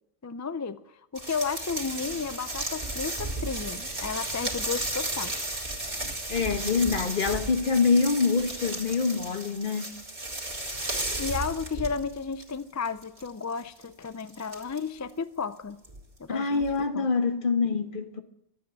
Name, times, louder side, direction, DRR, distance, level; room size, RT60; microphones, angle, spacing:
voice 1, 0.2-0.8 1.1-5.3 11.2-15.8 16.2-17.1, left 5 dB, 30° left, 0.3 m, -33 dB
sound 1, 1.2-12.5 12.8-15.1 15.8-16.0 16.6-16.8, right 2 dB, 45° right, 2.5 m, -34 dB
voice 2, 6.3-9.9 16.3-18.2, left 4 dB, 55° left, 1.3 m, -25 dB
13.0 x 8.5 x 8.7 m
omnidirectional pair, 1.0 m